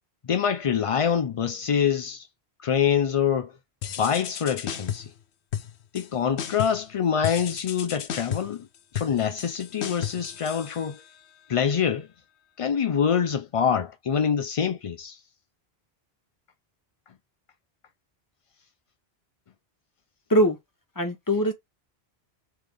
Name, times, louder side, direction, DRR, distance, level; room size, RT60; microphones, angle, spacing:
voice 1, 0.2-2.3 2.6-3.6 4.0-5.1 5.9-8.7 8.9-11.0 11.5-12.1 12.6-15.2, left 7 dB, 60° left, 0.3 m, -25 dB
sound 1, 3.8-5.2 5.5-6.1 6.4-6.9 7.2-11.2, left 9 dB, 85° left, 1.0 m, -34 dB
voice 2, 21.0-21.5, equal, 20° left, 1.0 m, -21 dB
3.5 x 3.4 x 3.4 m
omnidirectional pair, 1.1 m